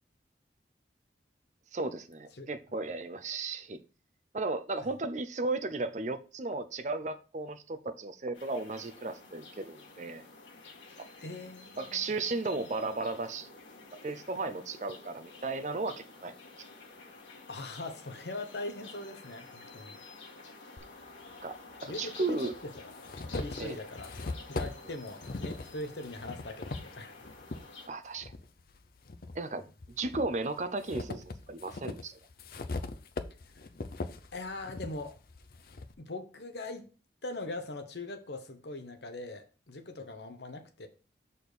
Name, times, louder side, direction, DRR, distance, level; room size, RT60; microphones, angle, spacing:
voice 1, 1.7-3.8 4.3-10.2 11.0-11.1 11.8-13.5 14.0-16.3 21.4-21.5 21.8-22.5 23.6-23.8 27.9-28.3 29.3-29.7 30.0-32.2, right 3 dB, 40° right, 0.6 m, -35 dB
sound 1, 8.3-27.9, left 3 dB, 90° left, 1.8 m, -50 dB
voice 2, 11.2-12.1 17.5-20.0 21.9-22.9 23.3-24.2 24.5-27.1 34.3-35.2 36.0-36.9 37.2-40.9, left 2 dB, 70° left, 1.1 m, -41 dB
sound 2, 20.8-20.9 21.9-22.0 22.5-27.6 28.2-29.4 29.8-35.9, left 3 dB, 55° left, 0.6 m, -40 dB
6.5 x 4.2 x 5.3 m
head